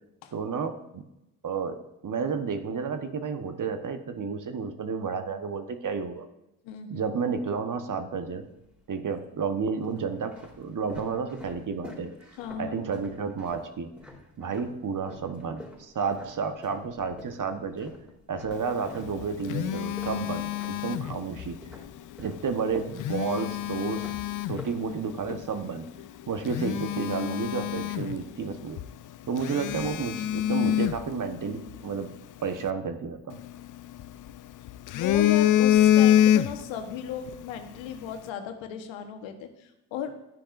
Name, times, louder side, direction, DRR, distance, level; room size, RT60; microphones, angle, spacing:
voice 1, 0.3-1.0 1.4-1.8 2.0-6.3 6.9-8.5 8.9-12.1 12.6-13.9 14.4-17.9 18.3-21.6 22.2-24.1 24.5-25.9 26.3-28.8 29.3-32.1 32.4-33.4, right 5 dB, 40° right, 8 dB, 1.2 m, -31 dB
voice 2, 6.6-7.1 12.4-12.8 34.9-40.1, left 8 dB, 75° left, 6 dB, 1.2 m, -36 dB
sound 1, 8.3-9.0 9.7-14.8 15.1-21.3 21.6-25.3, left 1 dB, 5° right, 3.6 m, -47 dB
Telephone, 19.0-21.5 22.8-24.7 25.3-25.5 26.0-26.1 26.5-28.5 28.8-28.9 29.4-31.8 33.3-34.3 34.7-36.8 37.1-37.4, left 12 dB, 45° left, 0.5 m, -25 dB
11.0 x 10.0 x 2.6 m, 0.90 s
hypercardioid pair, 50°, 47 cm